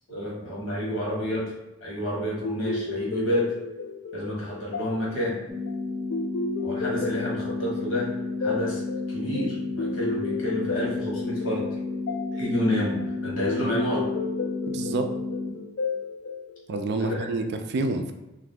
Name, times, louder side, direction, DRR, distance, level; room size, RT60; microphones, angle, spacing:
voice 1, 0.1-1.5 1.8-3.5 4.1-5.4 6.6-8.8 9.1-11.7 12.3-14.1 17.0-17.3, left 1 dB, 85° left, -5 dB, 1.3 m, -29 dB
sound 1, 2.4-17.2, left 4 dB, 65° left, 0.3 m, -34 dB
sound 2, 5.5-15.5, left 3 dB, 15° left, 0.6 m, -32 dB
voice 2, 14.7-15.1 16.7-18.1, right 3 dB, 55° right, 6 dB, 0.3 m, -28 dB
2.6 x 2.3 x 3.5 m, 1.0 s
head